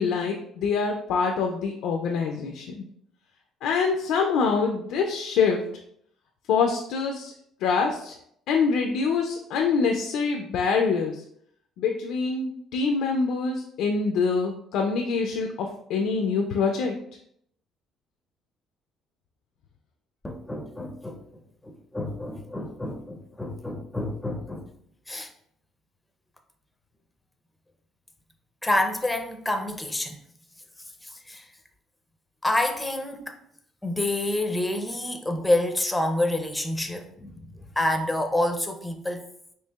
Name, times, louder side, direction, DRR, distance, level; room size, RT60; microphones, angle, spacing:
voice 1, 0.0-2.8 3.6-5.7 6.5-7.3 7.6-8.1 8.5-11.2 11.8-17.0, left 5 dB, 80° left, 2 dB, 0.4 m, -25 dB
voice 2, 20.2-21.2 21.6-24.7 25.1-25.3 28.6-30.2 31.0-31.5 32.4-33.4 33.8-39.3, left 1 dB, 10° left, 5 dB, 0.5 m, -28 dB
4.4 x 2.8 x 2.3 m, 0.70 s
cardioid pair, 105°, 0 cm